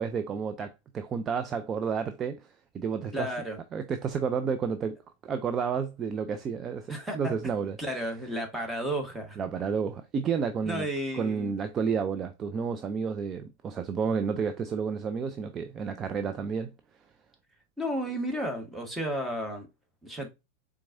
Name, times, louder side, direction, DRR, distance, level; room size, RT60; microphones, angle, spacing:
voice 1, 0.0-3.3 3.7-5.0 5.2-7.8 9.4-10.9 11.1-16.7, right 6 dB, 25° right, 0.4 m, -31 dB
voice 2, 3.1-3.6 6.9-9.4 10.6-11.5 17.8-19.7 20.0-20.3, equal, 5° right, 1.3 m, -33 dB
4.5 x 3.6 x 2.5 m
figure-of-eight pair, 90°, 0 cm